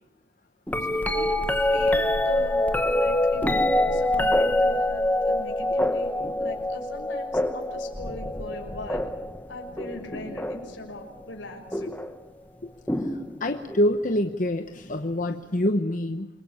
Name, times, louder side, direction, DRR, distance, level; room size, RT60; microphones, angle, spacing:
sound 1, 0.7-10.8 11.7-12.1 12.9-13.9 15.7-15.8, left 1 dB, 10° left, 1.3 m, -25 dB
voice 1, 0.8-6.1 6.4-9.1 9.5-11.9, left 2 dB, 75° left, 3 dB, 6.1 m, -40 dB
voice 2, 13.4-16.3, left 1 dB, 40° left, 7 dB, 1.0 m, -25 dB
28.0 x 22.5 x 8.7 m, 0.90 s
head